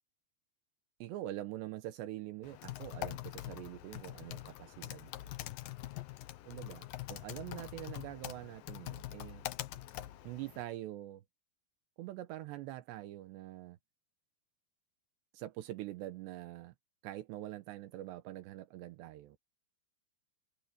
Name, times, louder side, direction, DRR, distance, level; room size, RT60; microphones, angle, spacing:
voice 1, 1.0-5.3 6.5-9.4 10.2-11.2 12.0-13.8 15.3-16.7 17.0-19.4, right 14 dB, 80° right, 3.1 m, -44 dB
Typing, 2.4-10.6, left 15 dB, 70° left, 2.2 m, -44 dB
omnidirectional pair, 5.0 m